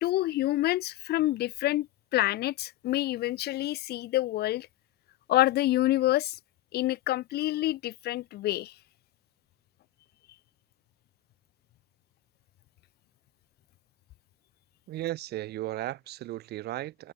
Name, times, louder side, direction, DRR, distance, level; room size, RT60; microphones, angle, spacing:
voice 1, 0.0-4.7 5.3-6.4 6.7-8.7, left 15 dB, 70° left, 1.0 m, -27 dB
voice 2, 14.9-17.1, right 15 dB, 75° right, 2.7 m, -35 dB
cardioid pair, 110°, 17 cm